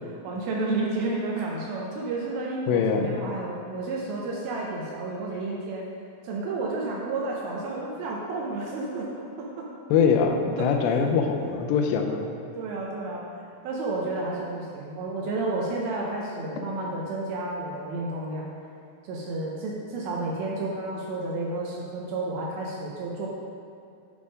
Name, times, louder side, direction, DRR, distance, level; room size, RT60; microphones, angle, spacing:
voice 1, 0.2-5.9 6.2-9.7 10.6-11.0 12.1-12.2 12.5-13.2 13.6-18.5 19.1-23.3, right 2 dB, 75° right, -3 dB, 2.3 m, -31 dB
voice 2, 2.7-3.2 9.9-12.3, left 6 dB, 85° left, 4 dB, 2.8 m, -23 dB
8.8 x 3.6 x 5.0 m, 2.6 s
omnidirectional pair, 4.9 m